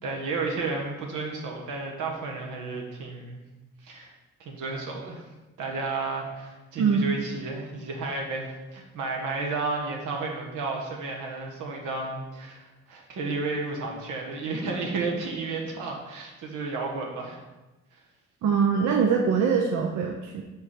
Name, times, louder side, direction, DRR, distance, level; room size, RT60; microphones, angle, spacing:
voice 1, 0.0-3.4 3.8-4.1 4.4-5.3 5.6-17.4 17.9-18.0, right 3 dB, 85° right, 0 dB, 1.2 m, -32 dB
voice 2, 18.4-20.4, right 6 dB, 65° right, 2 dB, 0.6 m, -23 dB
4.7 x 4.4 x 4.9 m, 1.1 s
cardioid pair, 90°, 30 cm